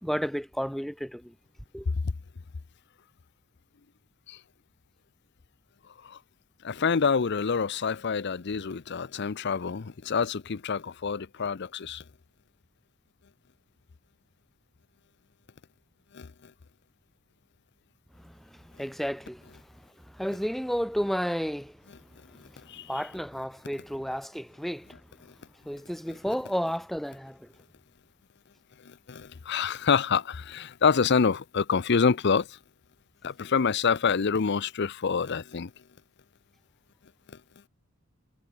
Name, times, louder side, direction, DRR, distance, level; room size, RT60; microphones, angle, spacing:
voice 1, 0.0-1.3 1.7-1.9 18.2-21.8 22.4-22.6 22.9-25.0 25.6-27.5, equal, ahead, 1.6 m, -32 dB
voice 2, 6.6-12.0 16.1-16.3 22.7-22.8 29.1-32.5 33.2-35.7, left 5 dB, 55° left, 0.6 m, -26 dB
head